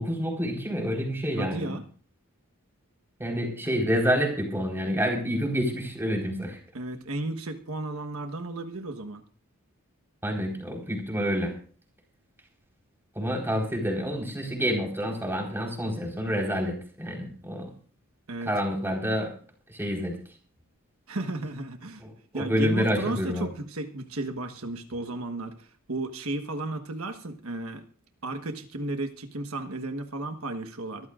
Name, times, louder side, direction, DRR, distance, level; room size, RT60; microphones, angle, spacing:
voice 1, 0.0-1.7 3.2-6.6 10.2-11.5 13.1-17.7 18.4-19.3 19.7-20.2 22.0-23.5, equal, 10° right, 1 dB, 4.3 m, -28 dB
voice 2, 1.4-1.8 3.6-3.7 6.7-9.2 18.3-18.5 21.1-22.0 22.3-27.8 28.2-31.1, right 2 dB, 80° right, 6 dB, 1.4 m, -34 dB
24.0 x 14.0 x 2.5 m, 0.42 s
head